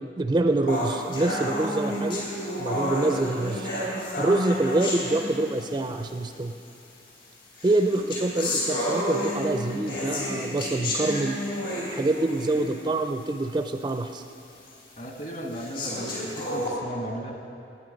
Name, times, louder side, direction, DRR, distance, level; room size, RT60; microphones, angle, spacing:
voice 1, 0.0-2.2 2.6-3.7 4.2-6.5 7.6-11.4 11.9-14.2, right 2 dB, 25° right, 7 dB, 0.4 m, -26 dB
sound 1, 0.7-5.8 6.7-6.8 7.6-12.8 13.3-13.4 13.9-14.0 14.7-14.8 15.5-16.7, left 1 dB, 70° left, 3.6 m, -30 dB
voice 2, 14.9-17.3, equal, 45° left, 2 dB, 1.5 m, -35 dB
17.0 x 9.2 x 5.2 m, 2.7 s
head